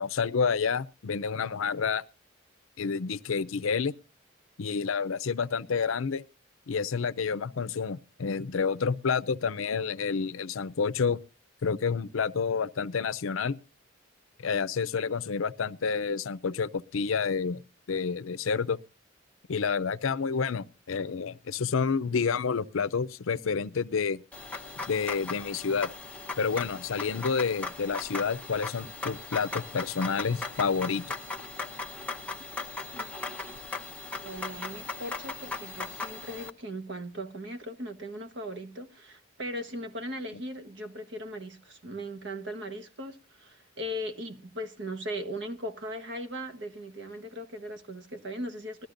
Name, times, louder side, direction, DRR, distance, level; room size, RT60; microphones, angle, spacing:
voice 1, 0.0-2.0 2.8-3.9 4.6-6.2 6.7-11.2 11.6-13.6 14.4-17.6 17.9-18.8 19.5-24.2 24.9-25.9 26.4-31.1, left 5 dB, 80° left, 0.5 m, -29 dB
sound 1, 24.3-36.5, left 3 dB, 5° left, 0.9 m, -38 dB
voice 2, 34.2-48.9, equal, 55° right, 1.2 m, -38 dB
20.0 x 13.0 x 2.5 m
head